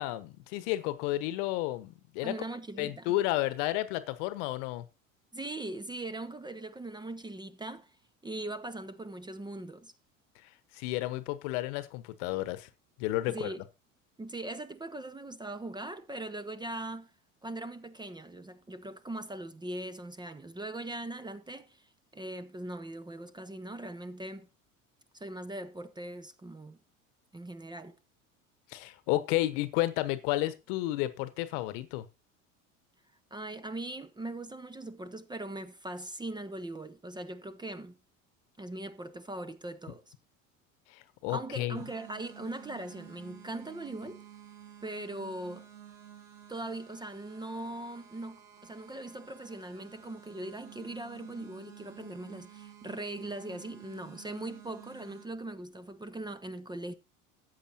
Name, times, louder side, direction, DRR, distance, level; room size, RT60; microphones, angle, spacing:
voice 1, 0.0-2.3 2.8-4.8 10.7-12.7 13.0-13.5 28.7-32.0 40.9-41.8, left 16 dB, 60° left, 1.1 m, -32 dB
voice 2, 2.2-3.1 5.3-8.0 8.2-9.9 13.3-13.6 14.2-17.1 17.4-21.9 22.1-24.5 25.1-26.8 27.3-27.9 33.3-38.0 38.6-40.1 41.3-44.2 44.8-45.7 46.5-56.9, right 2 dB, 10° right, 0.8 m, -40 dB
sound 1, 41.7-55.3, right 9 dB, 75° right, 1.9 m, -52 dB
14.0 x 8.2 x 2.9 m
figure-of-eight pair, 70°, 40 cm